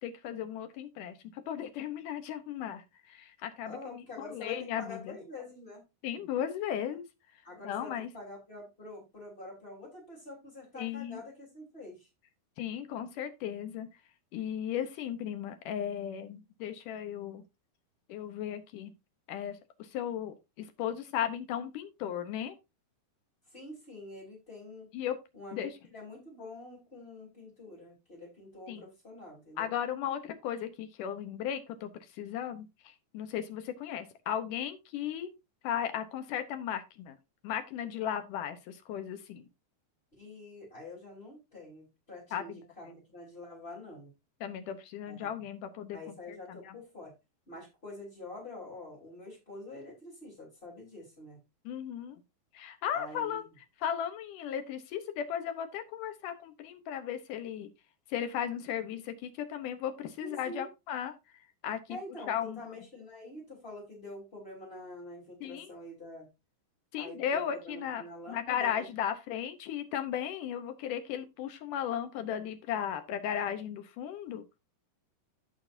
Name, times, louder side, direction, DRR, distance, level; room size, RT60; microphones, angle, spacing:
voice 1, 0.0-5.2 6.0-7.1 7.6-8.1 10.8-11.2 12.6-13.9 14.3-17.4 18.1-18.9 19.3-22.6 24.9-25.2 25.5-25.7 28.7-28.8 29.6-35.3 35.6-37.2 37.4-39.5 42.3-42.6 44.4-46.8 51.7-52.2 52.5-53.5 53.8-57.7 58.1-61.1 61.6-62.0 62.3-62.6 65.4-65.7 66.9-74.4, left 9 dB, 70° left, 2.0 m, -36 dB
voice 2, 3.6-5.8 7.4-12.1 23.5-24.9 25.3-29.7 40.1-44.1 45.1-45.3 45.9-47.1 47.5-51.4 52.9-53.4 60.2-60.7 61.9-66.3 66.9-68.9, left 2 dB, 15° left, 3.5 m, -46 dB
15.0 x 5.2 x 2.6 m
omnidirectional pair, 4.6 m